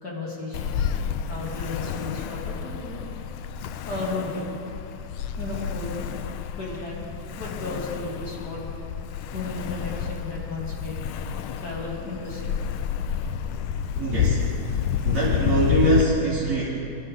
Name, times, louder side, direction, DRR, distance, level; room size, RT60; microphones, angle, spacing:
voice 1, 0.0-0.7 1.3-3.0 3.7-4.5 5.4-6.1 6.6-7.1 7.4-8.8 9.3-11.0 11.6-12.6, left 2 dB, 50° left, -5 dB, 3.5 m, -34 dB
Ocean, 0.5-16.0, left 8 dB, 90° left, 1.5 m, -29 dB
voice 2, 13.9-16.6, right 2 dB, 50° right, -9 dB, 3.3 m, -24 dB
23.0 x 12.0 x 3.9 m, 2.7 s
omnidirectional pair, 2.3 m